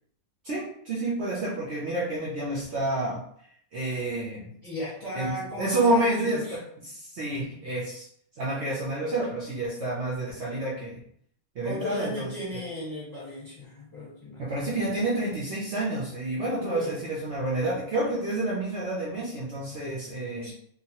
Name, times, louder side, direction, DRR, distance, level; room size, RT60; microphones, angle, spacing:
voice 1, 0.4-3.2 3.7-4.5 5.1-8.1 8.4-11.0 11.5-12.3 14.4-20.5, right 2 dB, 60° right, -5 dB, 0.9 m, -29 dB
voice 2, 4.6-6.6 11.6-14.6 16.6-16.9 20.4-20.5, equal, 15° left, -8 dB, 1.2 m, -36 dB
2.9 x 2.3 x 2.8 m, 0.66 s
omnidirectional pair, 1.5 m